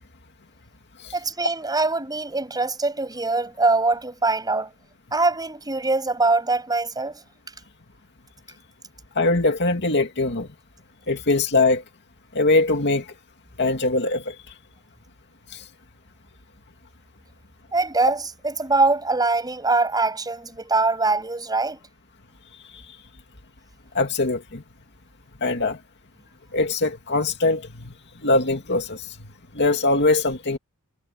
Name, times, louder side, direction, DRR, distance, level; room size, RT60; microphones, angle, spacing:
voice 1, 1.1-4.7 5.1-7.2 17.7-21.8, right 3 dB, 20° right, 7.3 m, -23 dB
voice 2, 9.2-10.5 11.1-11.8 12.3-13.1 13.6-14.4 15.5-15.6 22.7-22.9 23.9-24.6 25.4-25.8 26.5-27.9 28.2-29.3 29.5-30.6, left 2 dB, 50° left, 2.4 m, -22 dB
head